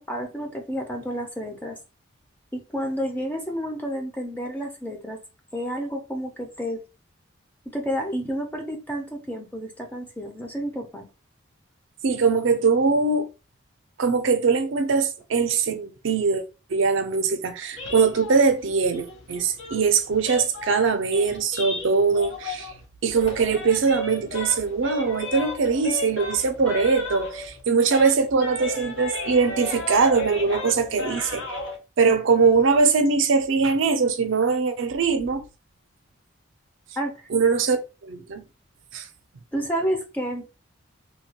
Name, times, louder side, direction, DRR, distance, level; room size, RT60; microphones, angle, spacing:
voice 1, 0.0-1.8 2.5-5.2 5.5-6.8 7.7-11.1 37.0-37.1 39.5-40.5, equal, 10° left, 0.4 m, -30 dB
voice 2, 12.0-13.3 14.0-16.4 16.7-22.7 23.0-31.6 32.0-35.4 37.3-37.8 38.0-38.4 38.9-39.1, right 5 dB, 65° right, 0.4 m, -22 dB
sound 1, 17.7-22.8 23.1-27.6 27.9-31.8, left 2 dB, 75° left, 0.7 m, -34 dB
2.8 x 2.2 x 2.8 m
head